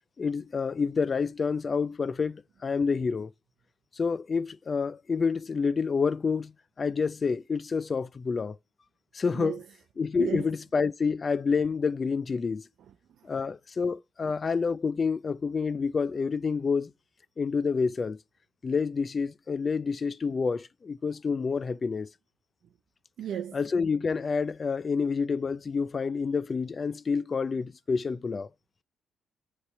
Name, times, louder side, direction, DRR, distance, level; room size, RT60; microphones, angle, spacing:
voice 1, 0.2-3.3 4.0-6.5 6.8-8.6 9.1-9.6 10.0-12.6 13.2-16.9 17.4-18.2 18.6-22.1 23.5-28.5, left 5 dB, 35° left, 0.4 m, -28 dB
voice 2, 9.3-9.6 10.2-10.5 12.9-13.4 23.2-23.6, right 9 dB, 70° right, 0.5 m, -35 dB
9.8 x 3.3 x 6.6 m
cardioid pair, 90°, 0 cm